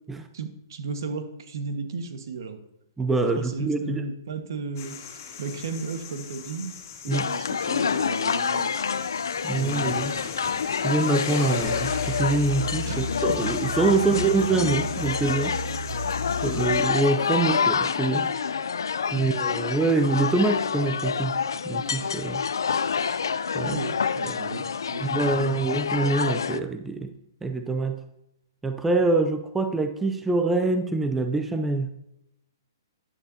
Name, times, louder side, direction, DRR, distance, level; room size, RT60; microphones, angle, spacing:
voice 1, 0.3-2.6 3.3-5.0 5.4-8.8 9.5-10.3 12.9-13.4 13.8-14.2 16.3-16.8 19.1-19.3 23.6-24.6 24.9-25.6, right 4 dB, 70° right, 7 dB, 1.4 m, -35 dB
voice 2, 3.0-4.0 7.1-7.3 9.4-10.1 10.8-15.6 16.4-18.3 19.1-21.4 21.6-22.4 23.5-23.8 24.2-24.4 25.0-27.1 27.4-28.0 28.6-31.9, right 3 dB, 10° right, 7 dB, 0.5 m, -25 dB
sound 1, 4.8-16.9, left 6 dB, 50° left, 2.7 m, -39 dB
sound 2, 7.1-26.6, left 6 dB, 90° left, 0.4 m, -27 dB
sound 3, 11.6-17.3, left 1 dB, 10° left, 3.2 m, -34 dB
10.5 x 9.8 x 2.8 m, 0.83 s
hypercardioid pair, 145°, 2 cm